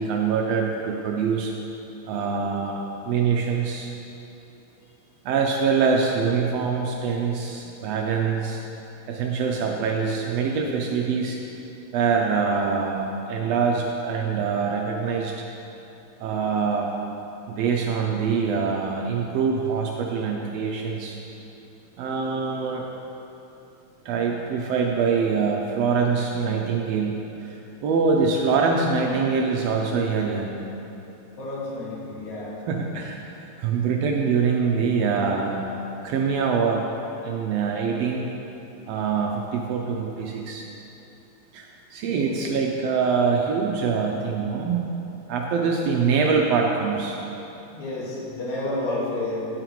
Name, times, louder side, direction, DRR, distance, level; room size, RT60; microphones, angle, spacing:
voice 1, 0.0-1.5 2.1-2.8 3.0-3.9 5.2-8.6 9.1-11.4 11.9-15.3 16.2-16.9 17.5-21.2 22.0-22.8 24.0-30.6 32.7-35.6 36.0-36.8 37.2-38.3 38.9-40.6 41.5-44.9 45.3-47.2, right 5 dB, 80° right, 0 dB, 1.5 m, -24 dB
voice 2, 31.4-32.6 42.1-42.4 47.7-49.4, left 2 dB, 80° left, -7 dB, 3.2 m, -30 dB
9.7 x 8.9 x 3.0 m, 2.9 s
omnidirectional pair, 3.3 m